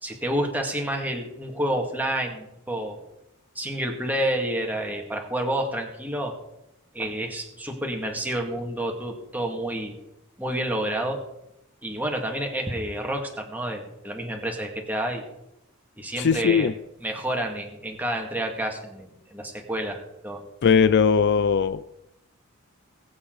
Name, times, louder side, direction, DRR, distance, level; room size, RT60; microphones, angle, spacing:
voice 1, 0.0-3.0 3.6-6.3 6.9-10.0 10.4-11.2 11.8-15.2 16.0-16.7 17.0-20.4, right 1 dB, 10° right, 1 dB, 2.2 m, -29 dB
voice 2, 16.2-16.7 20.6-21.8, left 6 dB, 55° left, 15 dB, 0.4 m, -19 dB
21.0 x 8.6 x 4.0 m, 0.85 s
head